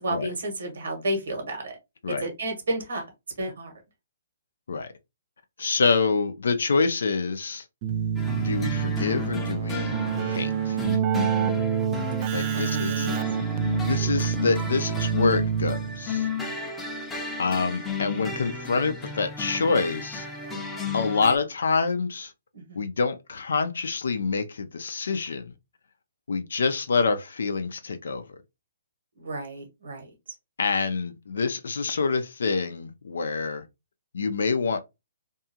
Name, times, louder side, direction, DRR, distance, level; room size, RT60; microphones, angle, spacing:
voice 1, 0.0-1.8 2.1-3.1 3.4-3.7 12.4-13.2 13.7-14.1 16.4-16.7 22.5-22.8 29.2-30.1, right 1 dB, 70° right, 1.3 m, -32 dB
voice 2, 5.6-7.7 8.3-10.0 10.2-10.8 12.3-13.1 13.9-16.3 17.4-20.3 20.9-22.3 22.8-25.5 26.3-28.4 30.6-33.6 34.1-34.8, left 4 dB, 75° left, 0.5 m, -26 dB
Keyboard (musical), 7.8-16.2, right 8 dB, 35° right, 0.4 m, -27 dB
sound 1, 8.2-21.4, left 5 dB, 10° left, 0.6 m, -34 dB
2.7 x 2.4 x 2.7 m
hypercardioid pair, 140°, 0 cm